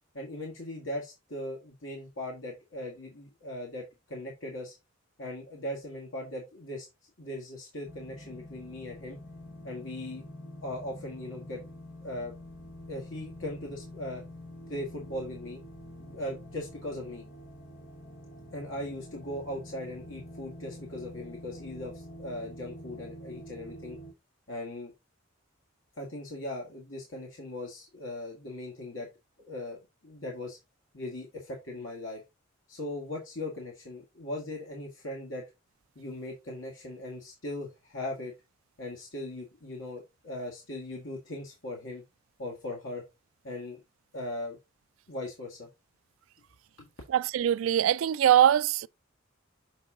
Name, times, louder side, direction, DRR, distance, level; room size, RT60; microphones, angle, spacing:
voice 1, 0.1-4.7 5.2-6.9 7.2-9.2 9.6-10.2 10.6-11.6 12.0-12.3 12.9-14.2 14.7-15.6 16.0-17.3 18.5-24.0 24.5-24.9 26.0-29.1 29.5-30.6 30.9-32.2 32.7-35.4 36.0-38.3 38.8-42.0 42.4-43.0 43.4-43.8 44.1-44.6 45.1-45.7 46.8-46.9, left 1 dB, 75° left, 1.8 m, -39 dB
sound 1, 7.8-24.1, left 1 dB, 50° left, 1.2 m, -46 dB
voice 2, 47.1-48.9, right 10 dB, 90° right, 0.3 m, -22 dB
6.7 x 3.9 x 3.7 m
head